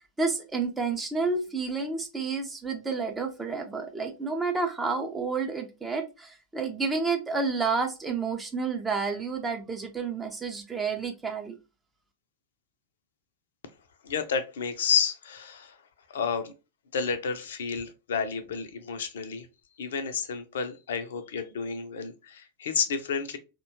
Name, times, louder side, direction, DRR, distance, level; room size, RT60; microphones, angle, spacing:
voice 1, 0.2-11.6, right 4 dB, 15° right, 3 dB, 0.4 m, -30 dB
voice 2, 14.0-15.8 16.1-16.5 16.9-19.5 19.8-23.4, left 6 dB, 60° left, 9 dB, 0.4 m, -30 dB
2.7 x 2.2 x 2.7 m, 0.29 s
figure-of-eight pair, 90°, 0 cm